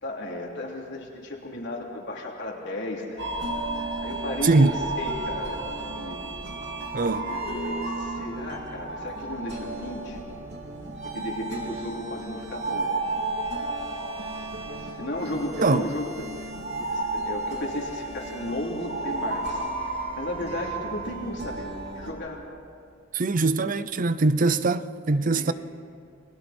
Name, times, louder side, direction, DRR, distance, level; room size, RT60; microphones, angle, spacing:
voice 1, 0.0-3.3 4.0-5.6 5.8-6.3 7.2-10.2 11.0-13.2 14.9-16.5 16.8-22.4 25.3-25.5, left 1 dB, 65° left, 3.4 m, -34 dB
sound 1, 3.2-22.1, right 2 dB, 60° right, 2.9 m, -33 dB
voice 2, 4.4-4.8 6.9-7.3 15.6-15.9 23.1-25.5, right 3 dB, 45° right, 0.6 m, -22 dB
29.5 x 21.5 x 4.4 m
head